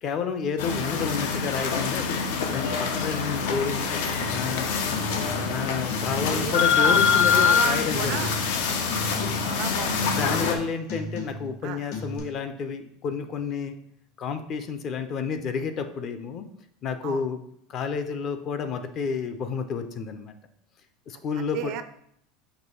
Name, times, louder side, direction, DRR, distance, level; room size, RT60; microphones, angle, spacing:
voice 1, 0.0-2.0 2.5-4.7 5.4-8.3 10.0-13.8 14.2-16.5 16.8-17.4 17.7-20.3 21.1-21.7, left 6 dB, 30° left, 9 dB, 0.4 m, -30 dB
sound 1, 0.6-10.5, left 6 dB, 90° left, 0.8 m, -25 dB
sound 2, 4.2-4.5 4.9-5.6 5.9-6.6 6.9-7.5 7.9-8.6 8.9-9.5 9.9-10.6 10.9-11.6 11.9-12.2, left 2 dB, 60° left, 1.7 m, -35 dB
voice 2, 6.0-8.3 9.1-10.1 11.6-11.8 17.0-17.3 21.1-21.8, right 10 dB, 40° right, 10 dB, 0.4 m, -33 dB
6.0 x 3.0 x 5.4 m, 0.70 s
cardioid pair, 180°, 0 cm